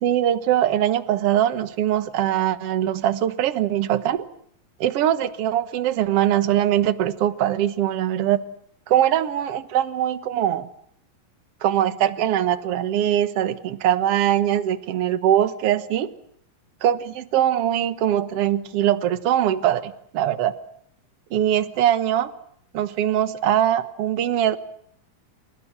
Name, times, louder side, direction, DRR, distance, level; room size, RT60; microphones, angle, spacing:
voice 1, 0.0-4.3 4.8-8.4 8.9-10.7 11.6-16.1 16.8-20.6 21.3-22.3 22.7-24.6, right 11 dB, 60° right, 11 dB, 1.6 m, -22 dB
29.5 x 28.0 x 6.1 m, 0.69 s
omnidirectional pair, 4.3 m